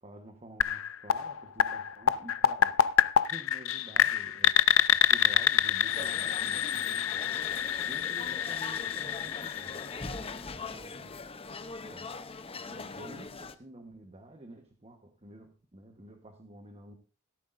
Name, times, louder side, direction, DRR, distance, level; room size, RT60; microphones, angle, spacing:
voice 1, 0.0-2.8 3.3-4.6 4.9-9.8 10.1-12.1 12.6-17.0, right 1 dB, 30° right, 5 dB, 1.2 m, -50 dB
sound 1, 0.6-10.4, left 9 dB, 65° left, 0.5 m, -27 dB
sound 2, 5.9-13.6, left 4 dB, 25° left, 0.7 m, -41 dB
15.0 x 13.0 x 2.6 m, 0.37 s
head